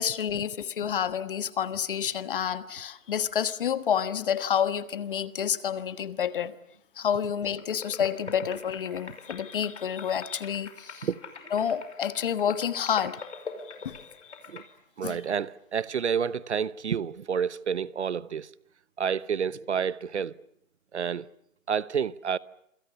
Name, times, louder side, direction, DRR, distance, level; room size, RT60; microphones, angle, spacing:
voice 1, 0.0-6.6 7.0-11.1 11.5-13.4 13.8-14.1 15.0-15.2, left 8 dB, 40° left, 1.4 m, -29 dB
sound 1, 7.4-14.6, left 5 dB, 55° left, 5.3 m, -44 dB
voice 2, 15.0-18.5 19.0-20.3 20.9-21.3 21.7-22.4, right 7 dB, 55° right, 1.0 m, -29 dB
27.5 x 26.0 x 6.9 m
figure-of-eight pair, 145°, 41 cm